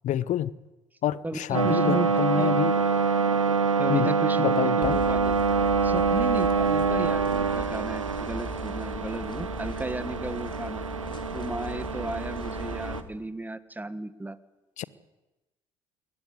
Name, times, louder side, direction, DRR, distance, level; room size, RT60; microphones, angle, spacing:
voice 1, 0.0-0.5 1.0-2.7 3.9-5.0 14.8-14.9, left 11 dB, 50° left, 0.9 m, -28 dB
voice 2, 1.2-2.5 3.8-5.4 5.8-10.8 11.3-14.4, right 2 dB, 10° right, 1.6 m, -34 dB
sound 1, 1.5-13.0, right 5 dB, 90° right, 0.8 m, -26 dB
sound 2, 4.8-13.0, left 2 dB, 30° left, 3.7 m, -39 dB
21.0 x 17.5 x 9.9 m
figure-of-eight pair, 55°, 16 cm